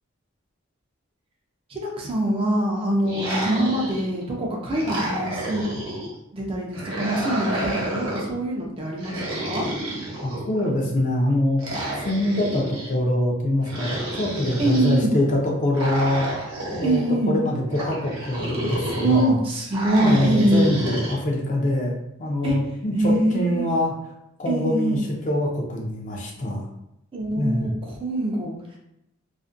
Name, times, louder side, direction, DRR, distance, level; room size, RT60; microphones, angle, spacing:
voice 1, 1.7-5.8 6.3-9.7 14.6-15.1 16.8-17.4 19.0-20.8 22.4-22.6 22.9-23.7 24.5-25.0 27.1-28.5, right 1 dB, 25° right, -1 dB, 0.4 m, -24 dB
sound 1, 3.0-4.2 4.7-6.1 6.7-8.3 9.0-10.7 11.6-12.9 13.6-15.0 15.7-17.1 17.7-19.3 19.7-21.2, right 1 dB, 70° right, 0.7 m, -30 dB
voice 2, 10.2-11.6 12.0-16.5 16.7-19.3 20.0-23.9 24.4-26.6 27.4-27.7, left 1 dB, 40° left, -1 dB, 0.5 m, -24 dB
2.4 x 2.1 x 2.5 m, 0.83 s
head